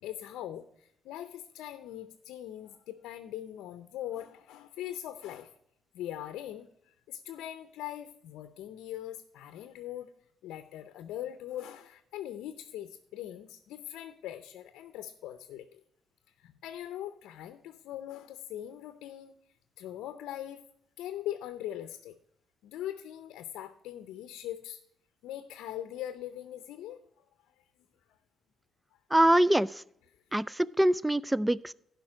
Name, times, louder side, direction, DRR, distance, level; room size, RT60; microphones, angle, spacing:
voice 1, 0.0-5.5 5.9-10.1 10.4-15.8 16.4-19.3 19.8-20.6 21.0-22.2 22.6-24.8 25.2-27.0, left 12 dB, 90° left, 10 dB, 0.6 m, -41 dB
voice 2, 29.1-29.8 30.3-31.7, right 1 dB, 10° right, 22 dB, 0.3 m, -24 dB
11.5 x 5.3 x 6.1 m, 0.75 s
cardioid pair, 90°, 0 cm